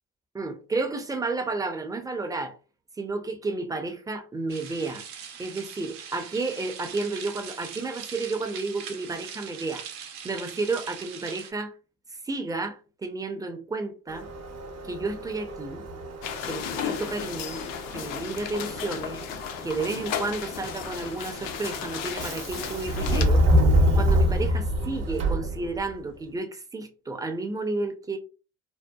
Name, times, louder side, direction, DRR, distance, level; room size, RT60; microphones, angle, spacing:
voice 1, 0.3-2.6 3.0-5.0 5.4-9.8 10.2-11.7 12.2-14.3 14.8-15.9 16.5-17.6 17.9-19.2 19.6-23.4 23.9-28.2, right 3 dB, 10° right, 0.5 m, -31 dB
sound 1, 4.5-11.5, right 7 dB, 85° right, 0.7 m, -41 dB
Subway metro underground, 14.1-26.0, equal, 45° right, 0.7 m, -27 dB
sound 2, 16.2-23.2, left 8 dB, 60° left, 0.5 m, -34 dB
2.7 x 2.1 x 2.2 m
supercardioid pair, 70°, 36 cm